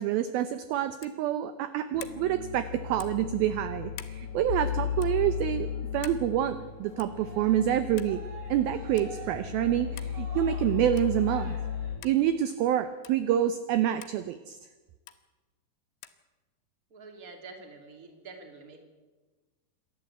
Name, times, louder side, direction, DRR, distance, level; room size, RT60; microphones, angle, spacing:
voice 1, 0.0-5.7 5.9-8.2 8.5-11.6 12.0-14.6, right 11 dB, 80° right, 11 dB, 2.1 m, -27 dB
Wall Heater Switch, 1.0-1.2 2.0-2.2 3.0-3.3 3.9-4.2 5.0-5.2 6.0-6.3 7.0-7.2 8.0-8.2 9.0-9.1 10.0-10.2 11.0-11.2 12.0-12.2 13.0-13.2 14.0-14.2 15.1-15.2 16.0-16.2, left 13 dB, 80° left, 3.4 m, -46 dB
sound 1, 1.9-12.0, left 8 dB, 50° left, 3.3 m, -35 dB
Cheering, 7.0-12.5, right 3 dB, 40° right, 4.5 m, -48 dB
voice 2, 16.9-18.8, right 3 dB, 25° right, 4 dB, 2.2 m, -47 dB
27.5 x 12.0 x 8.2 m, 1.3 s
omnidirectional pair, 5.2 m